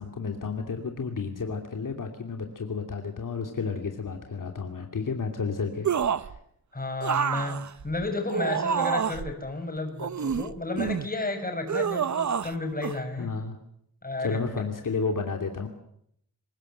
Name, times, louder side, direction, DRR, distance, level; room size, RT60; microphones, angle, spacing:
voice 1, 0.0-5.9 6.2-6.4 13.2-13.6 14.2-15.7, left 4 dB, 60° left, 4 dB, 2.8 m, -31 dB
sound 1, 5.8-6.4 7.0-9.3 10.0-11.1 11.7-12.5 12.8-13.0, right 7 dB, 50° right, 1.0 m, -28 dB
voice 2, 6.7-13.3 14.0-14.4, left 2 dB, 25° left, 5 dB, 6.6 m, -32 dB
27.0 x 19.0 x 8.1 m, 0.72 s
wide cardioid pair, 110°, 36 cm